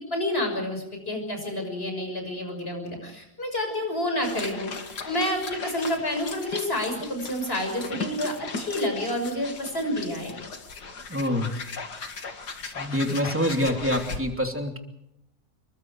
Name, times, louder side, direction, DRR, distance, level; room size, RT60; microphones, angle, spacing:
voice 1, 0.1-4.7 5.1-10.4, left 1 dB, 35° left, 4 dB, 6.7 m, -29 dB
sound 1, 4.2-14.2, left 4 dB, 80° left, 2.7 m, -37 dB
voice 2, 11.1-11.5 12.7-14.8, left 1 dB, 5° right, 3 dB, 2.9 m, -26 dB
27.5 x 23.5 x 4.8 m, 0.81 s
omnidirectional pair, 1.8 m